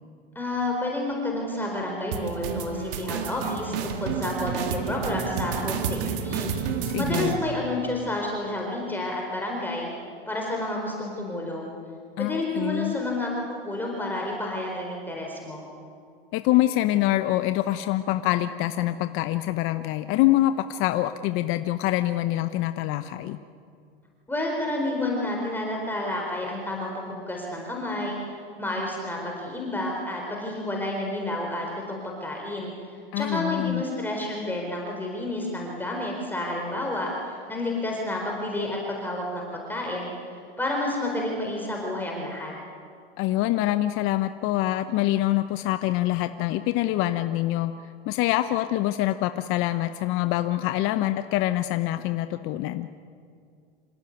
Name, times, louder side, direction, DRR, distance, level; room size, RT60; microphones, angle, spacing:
voice 1, 0.3-9.9 10.3-11.7 12.2-15.6 24.3-28.2 28.6-32.7 33.1-42.5, left 1 dB, 5° left, -1 dB, 4.3 m, -30 dB
sound 1, 2.1-7.4, right 6 dB, 65° right, 2.4 m, -30 dB
voice 2, 6.8-7.4 12.2-12.9 16.3-23.4 33.1-33.8 43.2-47.7 48.1-52.9, left 15 dB, 45° left, 10 dB, 0.9 m, -25 dB
26.5 x 16.5 x 9.4 m, 2.3 s
hypercardioid pair, 105°, 30 cm